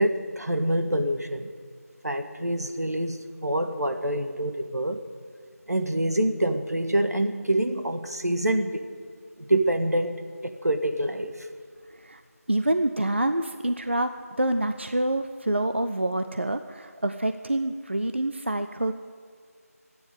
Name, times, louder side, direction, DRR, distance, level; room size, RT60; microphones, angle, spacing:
voice 1, 0.0-1.5 2.0-5.0 5.7-8.9 9.4-11.5, right 1 dB, 85° right, 7 dB, 1.7 m, -26 dB
voice 2, 12.5-18.9, right 1 dB, 45° right, 9 dB, 0.6 m, -27 dB
14.5 x 9.7 x 9.6 m, 2.1 s
figure-of-eight pair, 175°, 8 cm